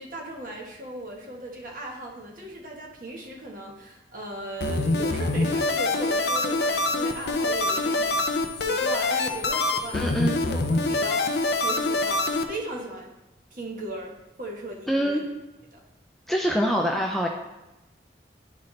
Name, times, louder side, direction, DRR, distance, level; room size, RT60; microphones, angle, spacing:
voice 1, 0.0-10.0 10.4-11.3 11.6-13.1 13.5-15.2 15.7-15.8, right 1 dB, 50° right, -1 dB, 1.3 m, -37 dB
sound 1, 4.6-12.4, left 2 dB, 70° left, 0.6 m, -25 dB
voice 2, 9.9-10.4 14.9-15.2 16.3-17.3, equal, ahead, 0 dB, 0.4 m, -24 dB
11.0 x 4.0 x 3.3 m, 1.0 s
head